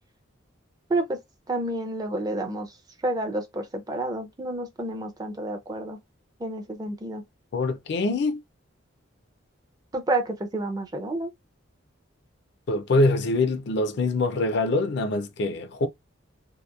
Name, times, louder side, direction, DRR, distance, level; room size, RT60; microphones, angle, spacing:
voice 1, 0.9-1.2 1.5-2.8 3.0-6.0 6.4-7.2 9.9-11.3, right 1 dB, 20° right, 0.4 m, -29 dB
voice 2, 7.5-8.4 12.7-15.9, left 2 dB, 55° left, 0.4 m, -24 dB
2.8 x 2.1 x 2.3 m
head